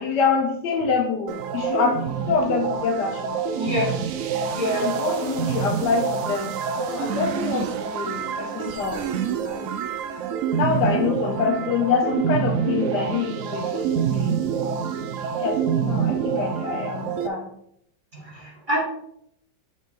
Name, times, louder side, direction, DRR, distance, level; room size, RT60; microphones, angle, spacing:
voice 1, 0.0-3.4 4.7-9.1 9.4-9.7 10.5-14.7 15.4-15.6 15.8-17.5, left 5 dB, 70° left, 4 dB, 1.3 m, -26 dB
sound 1, 1.3-17.3, right 7 dB, 80° right, 0.7 m, -27 dB
voice 2, 3.5-4.0 4.5-5.0 18.1-18.8, equal, 30° right, -3 dB, 1.4 m, -26 dB
7.3 x 3.5 x 4.5 m, 0.71 s
omnidirectional pair, 2.0 m